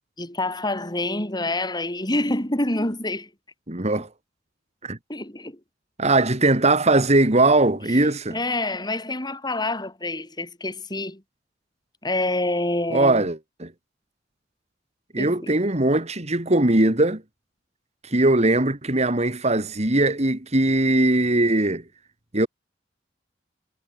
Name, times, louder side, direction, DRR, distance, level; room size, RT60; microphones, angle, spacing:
voice 1, 0.2-3.3 3.9-4.0 5.1-5.6 7.7-7.8 8.3-11.2 12.0-13.3 15.2-15.6, left 2 dB, 25° left, 6.7 m, -27 dB
voice 2, 3.7-4.1 4.8-5.0 6.0-8.3 12.9-13.7 15.1-17.2 18.0-21.8 22.3-22.5, right 2 dB, 35° right, 2.4 m, -20 dB
head